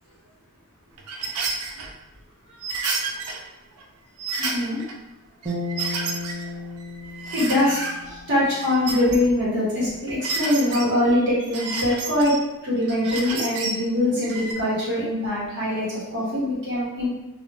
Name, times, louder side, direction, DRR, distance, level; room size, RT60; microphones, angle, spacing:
sound 1, 1.0-1.9 2.6-3.4 3.8-3.9 4.2-5.0 5.4-6.5 6.8-7.9 8.4-9.5 10.1-10.8 11.4-12.4 12.8-13.8 14.2-14.5, right 3 dB, 80° right, 0.4 m, -30 dB
voice 1, 4.4-4.8 6.4-6.5 7.3-12.3 12.6-17.1, left 1 dB, 55° right, -7 dB, 1.2 m, -23 dB
sound 2, 5.5-8.8, left 2 dB, 25° right, 0.6 m, -34 dB
2.4 x 2.1 x 3.4 m, 0.98 s
head